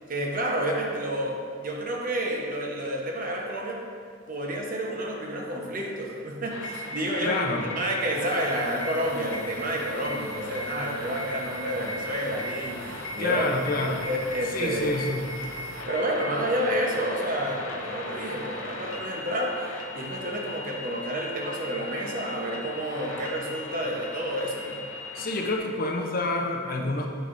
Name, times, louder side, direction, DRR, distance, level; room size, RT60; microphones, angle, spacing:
voice 1, 0.1-3.8 4.3-15.0 15.9-24.8, right 1 dB, 40° right, 0 dB, 0.9 m, -30 dB
sound 1, 6.5-25.6, left 1 dB, 80° left, 0.8 m, -38 dB
voice 2, 7.2-7.6 13.2-14.0 14.5-15.3 25.1-27.1, left 2 dB, 45° left, 2 dB, 0.6 m, -28 dB
sound 2, 8.1-15.8, right 2 dB, 80° right, 0.7 m, -46 dB
8.0 x 7.0 x 2.6 m, 2.1 s
head